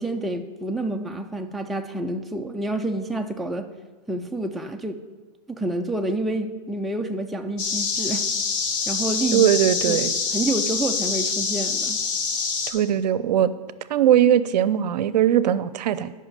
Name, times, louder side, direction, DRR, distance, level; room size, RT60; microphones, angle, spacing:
voice 1, 0.0-3.7 4.1-5.0 5.5-8.3 8.9-9.5 9.9-10.0 10.3-12.0, right 2 dB, ahead, 4 dB, 0.3 m, -28 dB
sound 1, 7.6-12.7, left 5 dB, 40° left, 1.3 m, -25 dB
voice 2, 9.3-10.1 12.7-13.5 13.9-16.1, right 10 dB, 75° right, 16 dB, 0.5 m, -20 dB
8.6 x 5.5 x 6.6 m, 1.3 s
hypercardioid pair, 130°, 21 cm